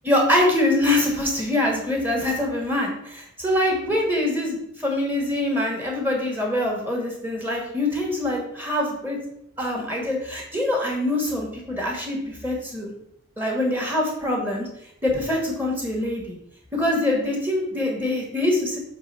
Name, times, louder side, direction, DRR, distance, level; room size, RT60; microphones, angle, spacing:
voice 1, 0.0-9.2 9.6-12.9 13.4-14.7 15.0-16.3 16.7-18.8, left 1 dB, 10° right, -1 dB, 1.6 m, -24 dB
7.2 x 3.4 x 5.5 m, 0.79 s
head